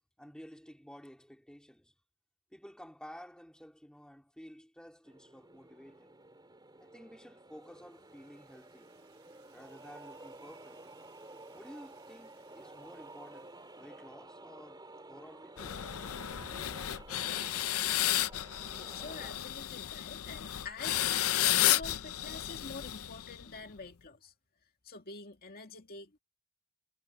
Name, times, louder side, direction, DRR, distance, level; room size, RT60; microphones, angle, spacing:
voice 1, 0.2-1.9 2.5-6.1 6.8-8.9 9.5-10.9 11.5-15.9 16.3-16.8, equal, 5° left, 2.6 m, -52 dB
sound 1, 5.1-19.3, right 2 dB, 20° right, 3.7 m, -52 dB
sound 2, 7.6-14.2, right 10 dB, 70° right, 5.8 m, -69 dB
sound 3, 15.6-23.6, left 13 dB, 80° left, 0.6 m, -32 dB
voice 2, 18.7-24.3 24.8-26.2, left 3 dB, 45° left, 2.3 m, -47 dB
head